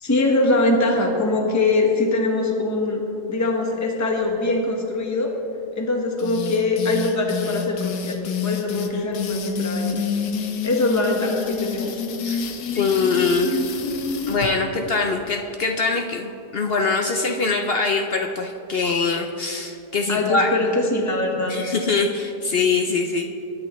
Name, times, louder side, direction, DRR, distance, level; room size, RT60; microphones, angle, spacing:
voice 1, 0.0-3.0 3.3-5.3 5.8-10.0 10.6-11.9 20.1-21.5, left 2 dB, 10° left, 1 dB, 1.1 m, -22 dB
sound 1, 6.2-14.5, left 6 dB, 75° left, 1.3 m, -28 dB
voice 2, 12.7-13.6 14.3-20.5 21.5-23.3, left 4 dB, 60° left, 4 dB, 0.6 m, -23 dB
21.0 x 9.5 x 3.1 m, 2.8 s
omnidirectional pair, 1.7 m